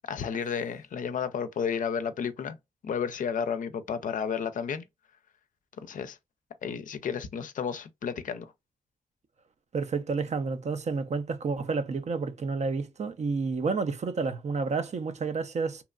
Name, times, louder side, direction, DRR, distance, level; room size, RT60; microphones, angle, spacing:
voice 1, 0.0-2.6 2.8-4.8 5.8-6.2 6.6-8.5, left 7 dB, 70° left, 0.4 m, -32 dB
voice 2, 9.7-15.8, right 4 dB, 50° right, 0.5 m, -30 dB
2.8 x 2.2 x 2.3 m
supercardioid pair, 45°, 14 cm